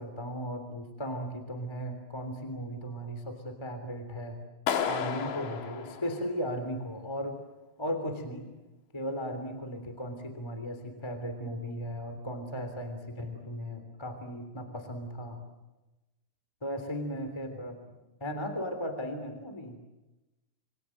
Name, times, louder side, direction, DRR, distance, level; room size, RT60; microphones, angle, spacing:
voice 1, 0.0-4.4 4.8-7.4 7.8-8.5 8.9-15.4 16.6-17.8 18.2-19.8, equal, 10° left, 7 dB, 2.3 m, -36 dB
Clapping, 4.7-6.7, left 7 dB, 75° left, 4.1 m, -33 dB
27.5 x 25.0 x 7.6 m, 1.1 s
omnidirectional pair, 5.1 m